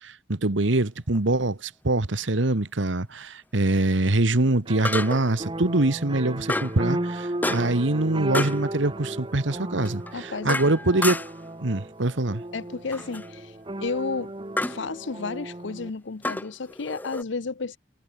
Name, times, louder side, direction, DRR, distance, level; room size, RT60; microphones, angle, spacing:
voice 1, 0.0-11.2 11.6-12.4, right 2 dB, 75° right, 1.5 m, -24 dB
sound 1, 1.1-1.3 4.8-5.4 6.5-6.8 7.4-7.9 8.3-8.6 9.8-11.5 12.9-13.3 14.6-14.8 16.2-17.2, left 2 dB, 10° left, 0.5 m, -30 dB
sound 2, 4.7-15.9, right 1 dB, 25° right, 1.1 m, -35 dB
voice 2, 10.1-10.6 12.5-13.5 13.8-14.3 14.6-17.8, left 4 dB, 70° left, 0.7 m, -32 dB
head